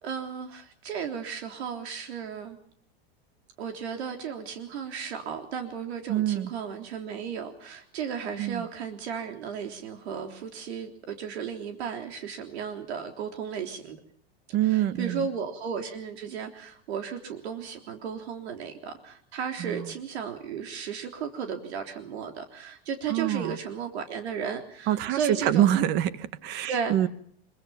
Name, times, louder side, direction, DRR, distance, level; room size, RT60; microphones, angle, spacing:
voice 1, 0.0-2.6 3.6-14.0 14.6-25.7 26.7-27.1, right 7 dB, 90° right, 3.6 m, -34 dB
voice 2, 6.1-6.5 8.4-8.6 14.5-15.3 19.6-19.9 23.1-23.6 24.9-27.1, right 12 dB, 35° right, 1.4 m, -26 dB
26.0 x 23.5 x 5.8 m
supercardioid pair, 165°, 32 cm